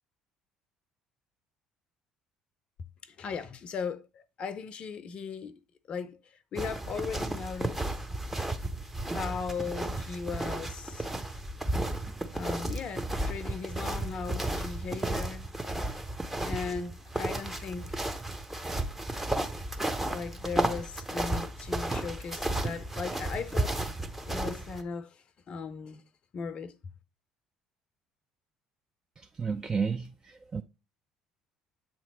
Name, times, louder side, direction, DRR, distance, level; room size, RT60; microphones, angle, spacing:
voice 1, 3.0-5.6 5.9-7.8 9.1-11.1 12.3-15.5 16.4-17.9 20.1-23.8 24.3-26.0 26.3-26.7, left 5 dB, 45° left, 0.5 m, -38 dB
sound 1, 6.6-24.8, right 1 dB, 10° right, 0.8 m, -33 dB
voice 2, 29.2-30.6, right 5 dB, 25° right, 0.4 m, -32 dB
7.5 x 3.0 x 4.2 m
figure-of-eight pair, 55°, 3 cm